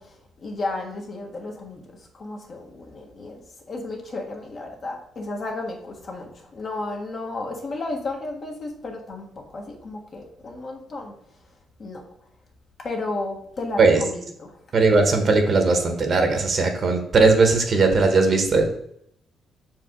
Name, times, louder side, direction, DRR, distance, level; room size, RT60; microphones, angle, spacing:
voice 1, 0.0-1.8 2.1-11.1 11.8-12.0 12.8-14.6, left 2 dB, 45° left, 1 dB, 1.4 m, -33 dB
voice 2, 14.7-18.6, right 3 dB, 45° right, 4 dB, 1.1 m, -18 dB
5.8 x 4.7 x 3.8 m, 0.70 s
cardioid pair, 90°, 0 cm